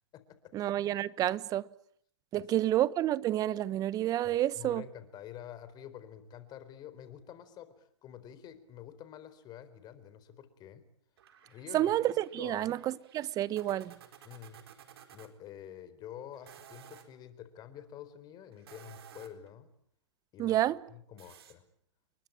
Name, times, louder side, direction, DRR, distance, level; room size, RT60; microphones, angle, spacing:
voice 1, 0.5-1.7 2.3-4.8 11.7-13.9 20.4-20.8, right 13 dB, 25° right, 1.1 m, -29 dB
voice 2, 4.2-10.8 11.4-11.9 12.4-12.8 14.2-14.6 15.1-19.7 20.3-20.6 20.9-21.6, left 10 dB, 30° left, 4.1 m, -48 dB
sound 1, 11.2-15.3 16.3-17.1 18.5-19.5 21.2-21.5, right 9 dB, 60° right, 4.5 m, -55 dB
29.5 x 22.5 x 8.7 m
hypercardioid pair, 120°, 15 cm